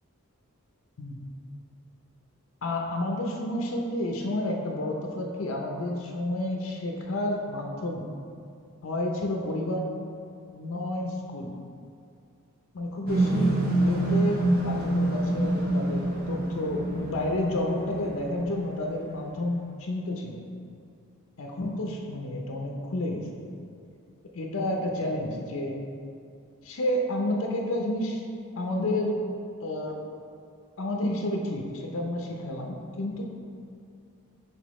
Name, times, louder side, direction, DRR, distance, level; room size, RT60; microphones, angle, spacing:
voice 1, 2.6-8.0 8.8-9.9 10.5-11.5 12.7-20.4 21.4-23.2 24.3-25.8 26.6-28.2 28.6-29.2 29.6-30.0 30.8-33.2, left 1 dB, 70° left, 1 dB, 0.6 m, -30 dB
sound 1, 13.1-18.3, right 1 dB, 45° right, 0.8 m, -26 dB
6.1 x 5.3 x 3.0 m, 2.4 s
head